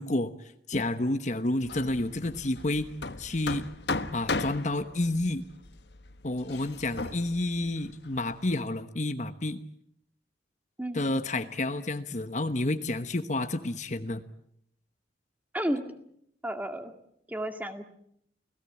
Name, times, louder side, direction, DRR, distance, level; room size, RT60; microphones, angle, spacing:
voice 1, 0.0-2.9 3.2-3.6 4.1-5.4 6.2-9.6 10.9-14.2, left 2 dB, 40° left, 10 dB, 1.1 m, -30 dB
Hammer, 1.6-8.5, left 3 dB, 65° left, 1.3 m, -37 dB
voice 2, 10.8-11.2 15.5-15.9 16.4-16.9 17.3-17.8, right 1 dB, 10° right, 7 dB, 2.0 m, -32 dB
29.5 x 18.0 x 8.5 m, 0.73 s
head